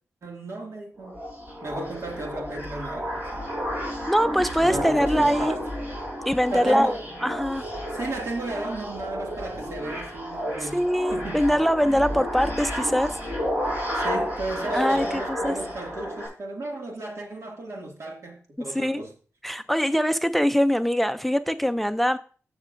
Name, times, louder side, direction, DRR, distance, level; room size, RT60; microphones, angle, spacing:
voice 1, 0.2-1.2 1.6-3.5 4.6-5.6 6.5-7.1 7.9-10.8 11.1-11.5 13.9-19.1, right 2 dB, 70° right, 2.1 m, -34 dB
sound 1, 1.0-16.3, equal, 40° right, 4.8 m, -31 dB
voice 2, 4.1-5.6 6.3-7.7 10.6-13.2 14.7-15.6 18.7-19.0 19.4-22.2, equal, ahead, 0.4 m, -23 dB
15.0 x 6.4 x 2.5 m
wide cardioid pair, 105°, 5 cm